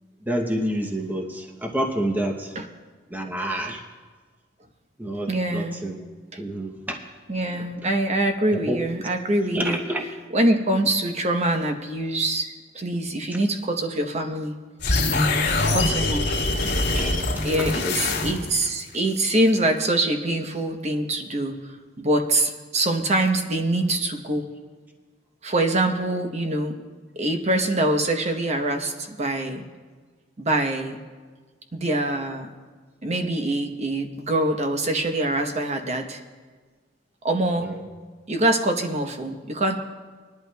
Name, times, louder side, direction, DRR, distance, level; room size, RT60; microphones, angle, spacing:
voice 1, 0.3-2.5 3.1-3.8 5.0-6.0 6.4-7.0 8.7-8.8 9.5-10.1 16.9-17.1 17.6-18.0 37.6-37.8, right 1 dB, 10° right, 2 dB, 0.7 m, -28 dB
voice 2, 5.3-5.8 7.3-9.8 10.3-14.5 15.7-16.5 17.4-24.4 25.4-26.7 27.2-29.6 30.4-31.0 31.7-32.5 33.0-36.2 37.2-37.7 38.3-39.8, right 1 dB, 35° right, 5 dB, 0.9 m, -24 dB
sound 1, 14.8-18.7, left 2 dB, 60° left, 2.3 m, -23 dB
21.0 x 11.0 x 2.3 m, 1.4 s
head